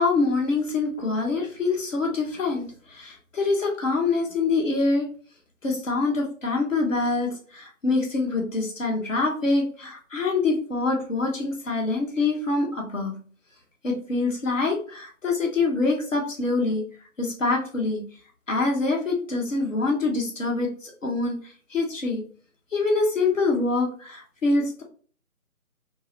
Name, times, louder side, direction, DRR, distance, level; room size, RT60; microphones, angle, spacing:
voice 1, 0.0-5.1 5.6-13.1 13.8-16.8 17.2-18.0 18.5-21.4 21.7-22.2 22.7-24.8, left 3 dB, 60° left, 0 dB, 1.1 m, -25 dB
3.7 x 2.1 x 2.7 m, 0.43 s
figure-of-eight pair, 155°, 43 cm